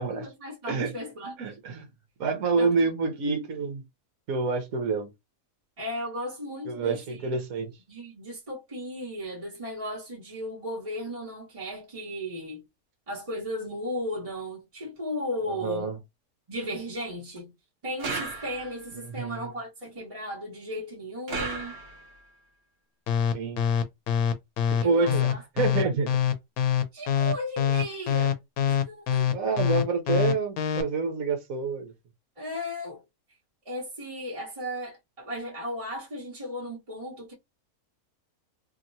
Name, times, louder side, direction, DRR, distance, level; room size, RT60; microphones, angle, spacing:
voice 1, 0.0-1.4 2.6-2.9 5.8-7.6 7.9-12.6 13.1-16.0 16.5-17.5 17.8-21.8 24.8-25.4 26.9-28.4 28.6-29.3 32.4-33.0 33.6-37.3, equal, 25° right, 1.1 m, -35 dB
voice 2, 1.4-1.9 2.2-3.8 4.3-5.1 6.7-7.7 15.5-15.9 19.0-19.5 23.3-23.6 24.7-25.3 25.6-26.1 29.3-31.9, right 4 dB, 70° right, 1.2 m, -27 dB
sound 1, 18.0-18.9 21.3-22.2, right 4 dB, 50° right, 0.9 m, -35 dB
sound 2, 23.1-30.8, left 9 dB, 80° left, 1.1 m, -24 dB
2.9 x 2.9 x 2.5 m
omnidirectional pair, 1.5 m